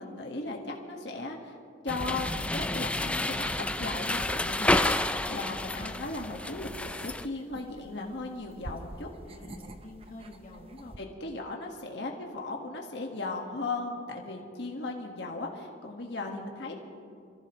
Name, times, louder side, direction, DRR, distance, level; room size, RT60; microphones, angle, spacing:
voice 1, 0.0-1.6 1.8-3.5 3.8-9.1 11.0-16.8, left 2 dB, 65° left, 0 dB, 1.6 m, -37 dB
sound 1, 1.9-7.3, left 1 dB, 5° left, 0.3 m, -30 dB
sound 2, 4.9-11.0, right 1 dB, 30° right, 0.8 m, -48 dB
voice 2, 9.2-11.0 16.8-17.2, left 2 dB, 40° left, -1 dB, 1.7 m, -48 dB
26.5 x 15.0 x 3.1 m, 2.3 s
head